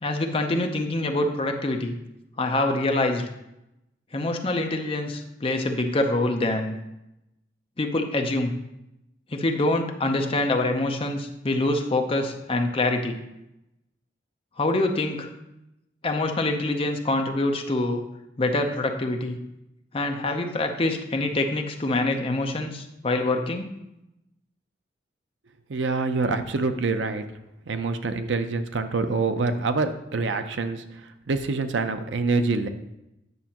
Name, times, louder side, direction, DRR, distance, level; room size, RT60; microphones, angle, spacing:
voice 1, 0.0-1.9 2.4-3.2 4.1-6.8 7.8-8.5 9.3-13.2 14.6-15.3 16.0-18.0 18.4-19.4 19.9-23.7, left 2 dB, 30° left, 4 dB, 0.6 m, -25 dB
voice 2, 25.7-27.3 27.7-30.8 31.3-32.7, right 3 dB, 75° right, 9 dB, 0.6 m, -26 dB
9.4 x 6.1 x 2.9 m, 0.88 s
head